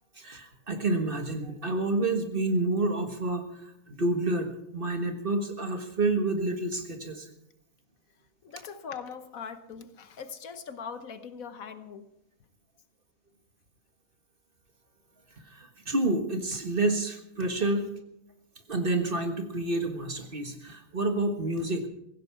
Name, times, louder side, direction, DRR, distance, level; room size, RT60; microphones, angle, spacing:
voice 1, 0.2-7.3 15.5-17.9 18.7-21.9, right 2 dB, 40° right, 5 dB, 1.7 m, -29 dB
voice 2, 8.4-12.1 17.6-17.7, left 6 dB, 70° left, 10 dB, 1.4 m, -41 dB
16.0 x 16.0 x 4.6 m, 0.81 s
omnidirectional pair, 1.5 m